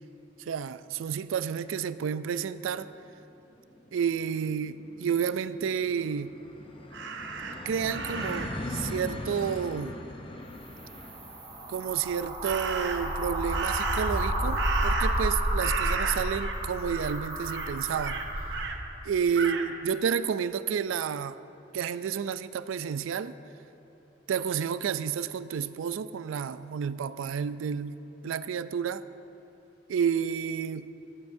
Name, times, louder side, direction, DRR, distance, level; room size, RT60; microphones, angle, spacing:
voice 1, 0.5-2.9 3.9-6.3 7.7-10.0 11.7-18.2 19.0-21.4 21.7-23.3 24.3-29.0 29.9-30.9, right 7 dB, 85° right, 15 dB, 0.4 m, -30 dB
sound 1, 3.2-3.3 3.5-15.0, left 1 dB, 25° left, 0.6 m, -41 dB
Crow, 6.9-8.7 12.4-13.2 13.5-15.3 15.6-16.6 16.9-17.2 17.5-18.8 19.3-19.7, right 4 dB, 60° right, 0.7 m, -34 dB
sound 2, 10.5-18.7, right 1 dB, 30° right, 2.5 m, -31 dB
14.0 x 13.0 x 2.6 m, 2.9 s
head